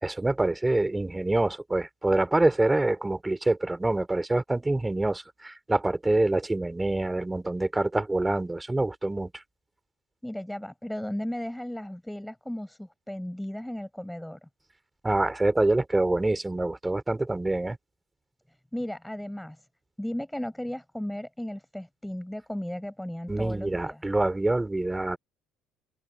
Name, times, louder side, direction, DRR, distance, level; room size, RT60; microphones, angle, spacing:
voice 1, 0.0-9.3 15.0-17.8 23.3-25.2, right 2 dB, 15° right, 3.4 m, -26 dB
voice 2, 10.2-14.5 18.7-19.6 20.0-24.0, left 1 dB, 5° left, 7.5 m, -35 dB
open air
supercardioid pair, 85°, 0 cm